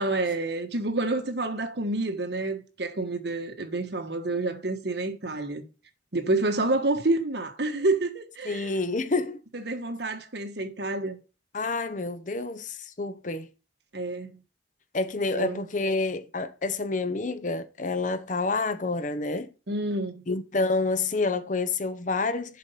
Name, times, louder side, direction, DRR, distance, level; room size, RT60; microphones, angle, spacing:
voice 1, 0.0-5.6 6.1-8.7 9.5-11.2 13.9-14.4 15.3-15.6 19.7-20.2, right 2 dB, 60° right, 1.3 m, -28 dB
voice 2, 8.4-9.4 11.5-13.5 14.9-19.5 20.3-22.6, left 3 dB, 40° left, 0.8 m, -28 dB
7.4 x 5.2 x 5.7 m
head